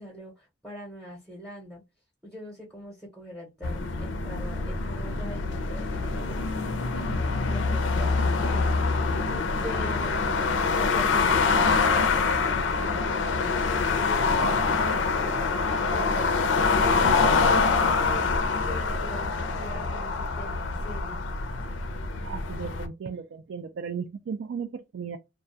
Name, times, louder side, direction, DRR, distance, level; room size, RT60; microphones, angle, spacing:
voice 1, 0.0-1.8 2.2-8.8 9.6-21.3, equal, ahead, 0.7 m, -43 dB
sound 1, 3.6-22.9, left 4 dB, 85° left, 0.5 m, -25 dB
voice 2, 22.2-25.2, right 6 dB, 80° right, 0.3 m, -35 dB
2.4 x 2.2 x 2.6 m
head